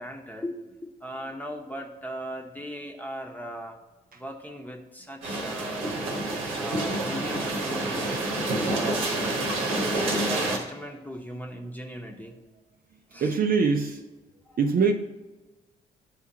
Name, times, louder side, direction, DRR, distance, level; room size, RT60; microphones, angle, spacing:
voice 1, 0.0-3.8 4.1-6.0 6.6-9.1 9.7-12.3 13.1-13.3 14.5-14.6, equal, 10° left, 2 dB, 1.1 m, -39 dB
sound 1, 5.2-10.6, right 2 dB, 75° right, 1.1 m, -28 dB
voice 2, 13.1-14.0 14.6-14.9, right 5 dB, 45° right, 4 dB, 0.6 m, -25 dB
10.0 x 3.4 x 2.8 m, 1.1 s
hypercardioid pair, 45°, 21 cm